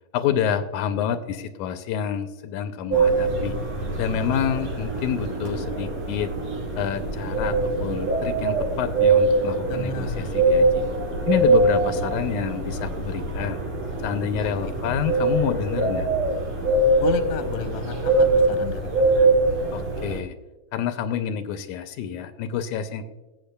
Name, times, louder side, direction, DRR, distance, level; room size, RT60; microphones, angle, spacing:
voice 1, 0.1-3.6 4.0-6.3 6.8-10.9 11.3-13.6 14.0-16.1 19.7-20.4 20.7-23.0, left 8 dB, 85° left, 9 dB, 2.0 m, -28 dB
sound 1, 2.9-20.2, right 2 dB, 65° right, 4.1 m, -23 dB
voice 2, 9.6-10.4 14.8-14.9 17.0-18.8 19.1-19.3, left 5 dB, 70° left, 6 dB, 1.8 m, -32 dB
17.0 x 8.3 x 2.2 m, 1.1 s
omnidirectional pair, 3.5 m